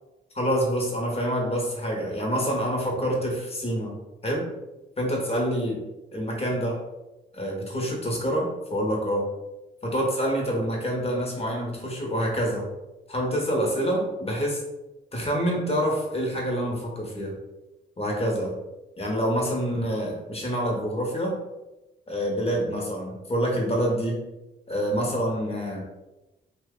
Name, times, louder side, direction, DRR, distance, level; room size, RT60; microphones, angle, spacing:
voice 1, 0.3-4.5 5.0-5.8 6.1-6.8 7.3-9.3 9.8-12.7 13.1-14.6 15.1-17.4 18.0-18.5 19.0-21.3 22.1-24.2 24.7-25.8, equal, 30° left, -1 dB, 1.1 m, -27 dB
2.8 x 2.2 x 3.7 m, 1.0 s
cardioid pair, 70°, 21 cm